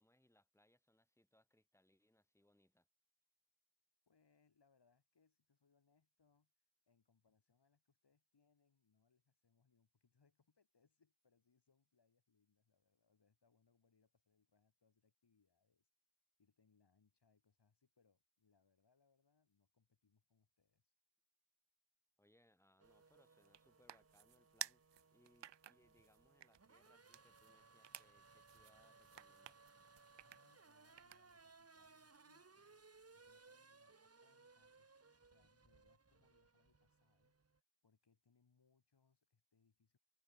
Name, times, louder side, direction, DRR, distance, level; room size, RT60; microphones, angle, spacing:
voice 1, 0.0-2.9 22.2-29.6, left 1 dB, 5° left, 3.3 m, -75 dB
voice 2, 4.1-6.5 6.9-15.9 16.4-20.9 30.2-37.3 37.8-40.0, left 5 dB, 70° left, 3.7 m, -79 dB
Race car auto racing / Accelerating revving vroom, 22.8-37.6, right 4 dB, 35° right, 1.4 m, -66 dB
sound 1, 22.8-31.5, right 10 dB, 75° right, 0.7 m, -56 dB
cardioid pair, 40°, 43 cm